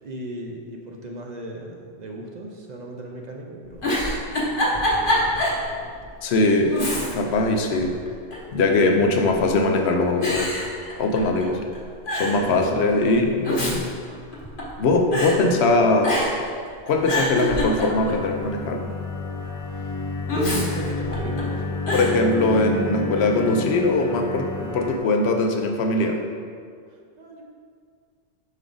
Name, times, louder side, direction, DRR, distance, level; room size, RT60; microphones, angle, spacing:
voice 1, 0.0-6.1 8.6-9.0 12.3-12.8 19.7-20.0 20.3-21.7 26.9-27.4, right 1 dB, 50° right, 0 dB, 0.6 m, -37 dB
Giggle, 3.6-5.6 6.0-6.1 6.7-7.4 7.7-8.5 9.3-9.7 10.2-11.4 11.7-11.8 12.1-12.4 13.2-14.8 15.1-15.4 16.0-16.5 16.9-18.2 20.3-21.4 21.9-22.2, left 1 dB, 55° left, 1.2 m, -25 dB
voice 2, 6.2-6.8 7.1-8.0 8.5-10.6 11.0-11.6 12.1-13.9 14.8-16.2 16.9-18.8 21.9-26.2, left 2 dB, 85° left, 3 dB, 0.9 m, -21 dB
sound 1, 17.5-25.0, left 3 dB, 35° left, 1.0 m, -30 dB
5.4 x 4.8 x 3.8 m, 2.1 s
omnidirectional pair, 1.1 m